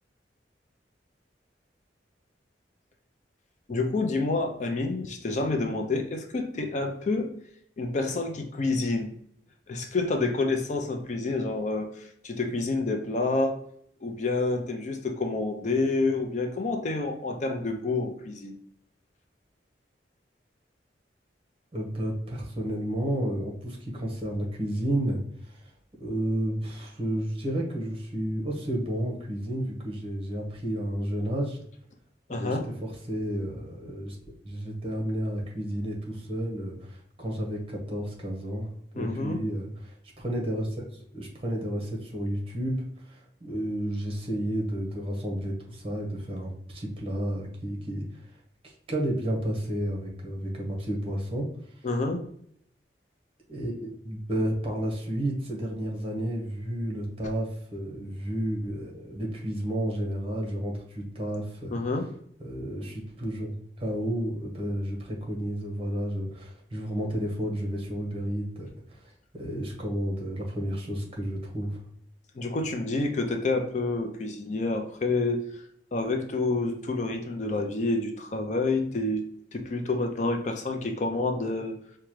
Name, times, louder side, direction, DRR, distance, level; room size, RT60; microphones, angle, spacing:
voice 1, 3.7-7.3 7.8-9.1 9.7-13.6 14.0-18.6 32.3-32.7 38.9-39.4 51.8-52.2 61.7-62.1 72.4-75.4 75.9-79.2 79.5-81.8, left 3 dB, 40° left, 4 dB, 0.4 m, -28 dB
voice 2, 21.7-25.7 26.0-31.6 32.4-34.2 34.4-38.7 38.9-40.7 41.1-48.2 48.6-51.5 53.5-61.7 62.4-71.8, right 1 dB, 30° right, 0 dB, 0.9 m, -31 dB
4.9 x 2.2 x 3.0 m, 0.67 s
head